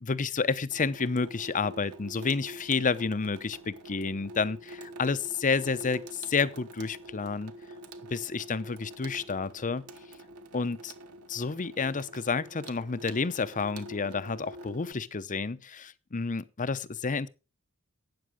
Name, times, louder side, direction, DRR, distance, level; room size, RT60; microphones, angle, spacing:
voice 1, 0.0-7.5 8.1-9.9 10.5-10.9 11.3-17.3, left 4 dB, 35° left, 0.7 m, -30 dB
Water tap faucet / Sink (filling or washing), 0.7-14.9, right 1 dB, 90° right, 1.5 m, -47 dB
12.5 x 9.0 x 5.0 m
head